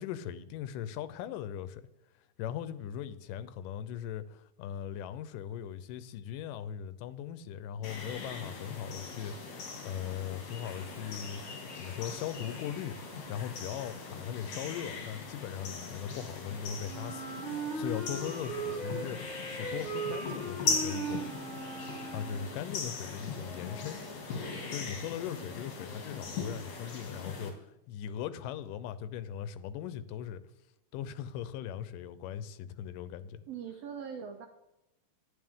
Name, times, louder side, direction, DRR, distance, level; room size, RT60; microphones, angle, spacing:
voice 1, 0.0-1.8 2.4-11.4 11.7-13.0 13.3-19.2 19.5-21.2 22.1-24.0 24.7-30.4 30.9-33.4, left 9 dB, 90° left, 2.3 m, -39 dB
sound 1, 7.8-27.5, left 4 dB, 65° left, 3.5 m, -40 dB
Wind instrument woodwind instrument, 16.9-22.7, right 3 dB, 25° right, 2.3 m, -38 dB
voice 2, 33.5-34.5, right 7 dB, 75° right, 1.5 m, -41 dB
11.0 x 9.4 x 3.6 m
omnidirectional pair, 3.7 m